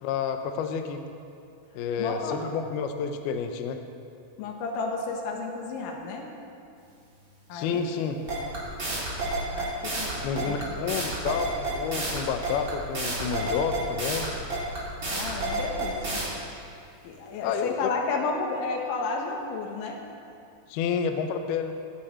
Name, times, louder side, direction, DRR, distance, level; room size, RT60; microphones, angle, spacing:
voice 1, 0.0-1.0 1.8-3.8 7.5-8.2 10.0-14.3 17.4-18.0 20.7-21.7, left 6 dB, 90° left, 6 dB, 2.2 m, -30 dB
voice 2, 2.0-2.4 4.4-6.4 7.5-8.4 9.5-10.9 15.1-16.2 17.0-20.0, left 4 dB, 70° left, 1 dB, 3.7 m, -32 dB
sound 1, 8.3-16.2, right 2 dB, 25° right, 3.6 m, -30 dB
18.0 x 15.0 x 4.4 m, 2.5 s
omnidirectional pair, 5.8 m